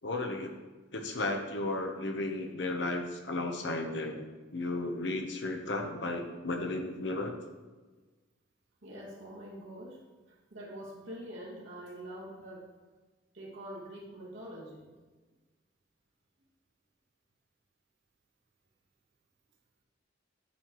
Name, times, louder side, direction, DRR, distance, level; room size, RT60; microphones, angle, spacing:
voice 1, 0.0-0.5 0.9-4.2 4.5-7.3, left 2 dB, 65° left, 4 dB, 0.9 m, -34 dB
voice 2, 8.8-12.7 13.3-14.9, right 1 dB, 80° right, -4 dB, 2.1 m, -45 dB
9.6 x 6.5 x 3.1 m, 1.3 s
head